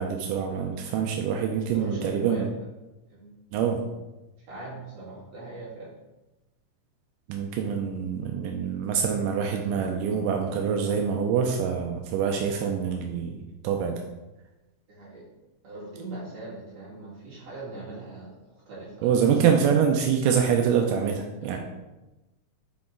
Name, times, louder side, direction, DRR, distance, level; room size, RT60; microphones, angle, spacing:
voice 1, 0.0-2.5 3.5-3.8 7.3-14.0 19.0-21.6, right 7 dB, 90° right, 2 dB, 2.2 m, -25 dB
voice 2, 1.7-2.5 3.1-3.3 3.5-3.9 4.5-5.9 14.9-15.2 15.6-19.2 21.4-21.6, right 2 dB, 55° right, -7 dB, 3.3 m, -40 dB
6.1 x 4.7 x 3.7 m, 1.0 s
omnidirectional pair, 3.6 m